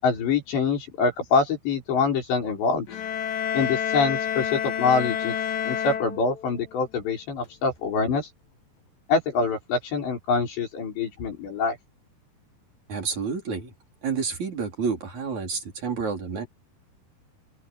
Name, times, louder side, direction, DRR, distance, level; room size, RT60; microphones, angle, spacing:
voice 1, 0.0-3.0 3.5-5.3 5.7-8.3 9.1-11.8, left 4 dB, 85° left, 8.1 m, -25 dB
sound 1, 2.9-6.7, left 8 dB, 55° left, 3.7 m, -29 dB
voice 2, 12.9-13.7 14.0-16.5, right 5 dB, 45° right, 5.5 m, -29 dB
open air
omnidirectional pair, 4.9 m